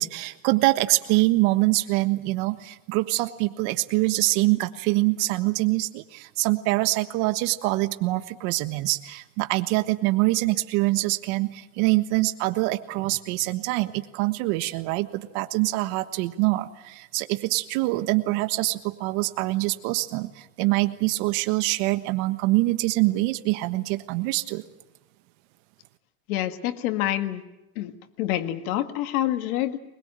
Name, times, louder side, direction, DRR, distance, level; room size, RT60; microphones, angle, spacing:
voice 1, 0.0-24.6, right 20 dB, 65° right, 10 dB, 1.4 m, -24 dB
voice 2, 26.3-27.4 27.8-27.9 28.2-29.8, left 13 dB, 80° left, 8 dB, 1.9 m, -27 dB
21.5 x 21.5 x 9.0 m, 0.98 s
supercardioid pair, 110°, 43 cm